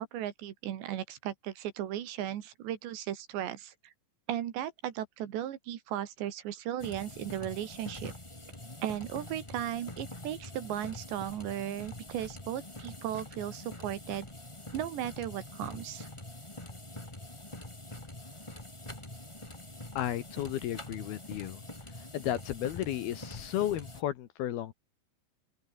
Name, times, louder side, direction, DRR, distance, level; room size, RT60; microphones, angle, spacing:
voice 1, 0.0-3.9 4.3-8.1 8.8-14.3 14.7-16.1, right 11 dB, 70° right, 4.0 m, -36 dB
sound 1, 6.8-24.0, left 1 dB, 10° left, 1.8 m, -45 dB
voice 2, 20.0-21.6 22.1-24.7, left 12 dB, 65° left, 2.8 m, -33 dB
open air
omnidirectional pair, 5.3 m